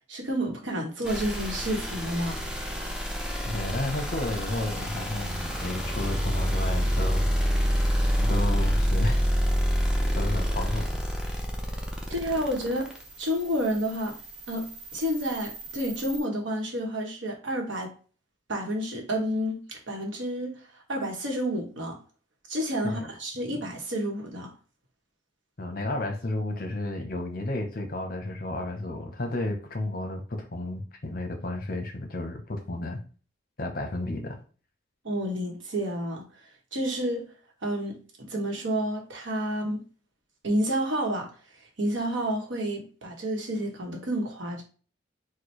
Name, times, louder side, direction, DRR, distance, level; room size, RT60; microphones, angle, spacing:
voice 1, 0.1-2.4 12.1-12.9 13.2-14.2 14.5-17.9 18.5-20.6 20.9-22.0 22.5-24.5 35.0-36.3 36.7-37.3 37.6-39.9 40.4-41.3 41.8-44.6, equal, 75° right, 1.0 m, -30 dB
sound 1, 1.0-16.2, equal, 5° right, 0.5 m, -28 dB
voice 2, 3.5-7.3 8.2-9.2 10.1-11.0 22.8-23.0 25.6-33.0 33.6-34.4, left 2 dB, 45° left, 0.7 m, -32 dB
4.4 x 2.1 x 3.1 m
head